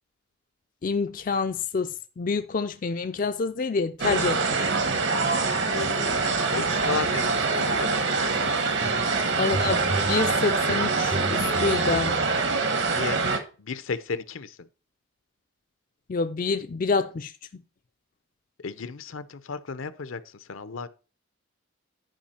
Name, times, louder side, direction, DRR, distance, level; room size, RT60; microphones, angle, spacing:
voice 1, 0.8-4.4 9.4-12.2 16.1-17.6, left 4 dB, 40° left, 0.4 m, -27 dB
sound 1, 4.0-13.4, right 4 dB, 55° right, 1.2 m, -25 dB
voice 2, 5.7-8.2 12.9-13.2 13.6-14.7 18.6-20.9, left 4 dB, 75° left, 0.7 m, -34 dB
sound 2, 8.8-9.2 9.4-12.6, right 2 dB, 20° right, 0.4 m, -34 dB
10.5 x 4.9 x 4.3 m
head